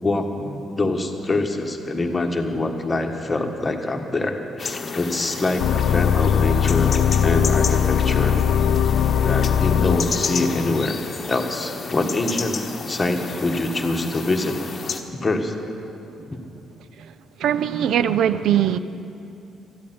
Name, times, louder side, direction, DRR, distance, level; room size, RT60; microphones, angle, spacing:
voice 1, 0.0-6.9 7.2-8.4 9.2-12.6 12.9-14.6 15.2-15.5 16.3-16.4, left 2 dB, 20° left, 3 dB, 1.5 m, -25 dB
sound 1, 4.6-15.0, left 4 dB, 40° left, 1.1 m, -32 dB
sound 2, 5.6-10.9, left 8 dB, 85° left, 0.4 m, -20 dB
voice 2, 17.4-18.8, right 10 dB, 75° right, 14 dB, 0.5 m, -20 dB
13.5 x 8.5 x 9.5 m, 2.7 s
cardioid pair, 90°, 0 cm